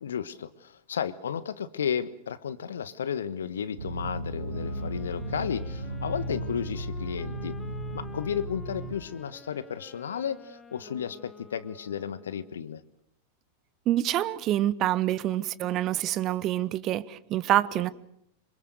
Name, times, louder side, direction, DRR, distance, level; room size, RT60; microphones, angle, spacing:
voice 1, 0.0-7.6 7.9-12.8, left 8 dB, 65° left, 1.4 m, -33 dB
sound 1, 3.8-8.9, right 1 dB, 70° right, 3.8 m, -35 dB
Wind instrument woodwind instrument, 4.3-12.7, left 4 dB, 15° left, 1.7 m, -49 dB
voice 2, 13.9-17.9, right 13 dB, 35° right, 1.1 m, -26 dB
26.5 x 25.5 x 6.8 m
figure-of-eight pair, 90°, 0 cm